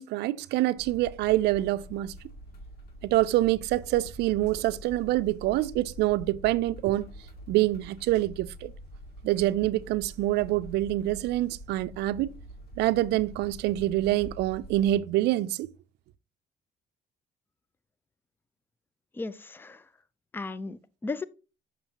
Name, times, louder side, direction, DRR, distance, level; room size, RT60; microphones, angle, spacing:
voice 1, 0.0-2.1 3.0-7.1 7.5-8.7 9.2-12.4 12.8-15.7, right 16 dB, 80° right, 0.4 m, -26 dB
sound 1, 0.8-15.0, equal, 70° left, 2.0 m, -46 dB
voice 2, 19.1-19.8 20.3-21.2, left 3 dB, 10° left, 0.4 m, -35 dB
7.1 x 6.1 x 2.9 m
cardioid pair, 110°, 17 cm